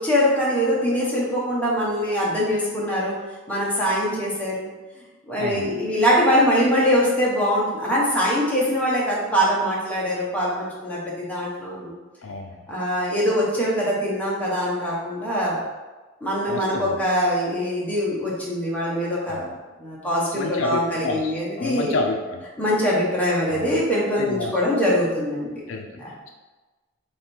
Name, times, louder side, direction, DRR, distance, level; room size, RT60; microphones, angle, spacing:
voice 1, 0.0-3.1 3.5-4.7 5.3-11.9 12.7-15.6 16.2-19.4 19.8-21.9 22.6-25.6 26.0-26.1, equal, 5° left, -6 dB, 1.1 m, -23 dB
voice 2, 5.4-5.7 12.2-12.6 16.5-17.0 19.3-19.6 20.3-22.4 23.5-23.7 24.1-24.6 25.7-25.9, left 3 dB, 70° left, 2 dB, 0.4 m, -29 dB
3.6 x 3.3 x 4.4 m, 1.2 s
head